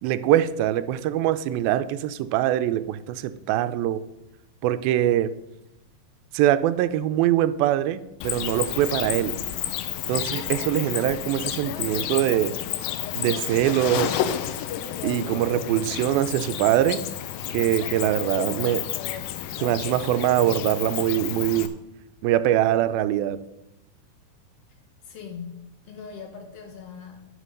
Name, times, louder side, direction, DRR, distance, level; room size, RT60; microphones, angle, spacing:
voice 1, 0.0-4.0 4.6-5.3 6.3-9.4 10.1-12.5 13.1-14.3 15.0-17.0 17.5-18.8 19.6-21.7 22.2-23.4, right 12 dB, 85° right, 13 dB, 2.4 m, -23 dB
Cricket, 8.2-21.7, left 11 dB, 80° left, 2.5 m, -31 dB
voice 2, 25.0-27.2, left 6 dB, 55° left, 4 dB, 1.8 m, -40 dB
11.0 x 6.2 x 6.6 m, 0.88 s
omnidirectional pair, 4.1 m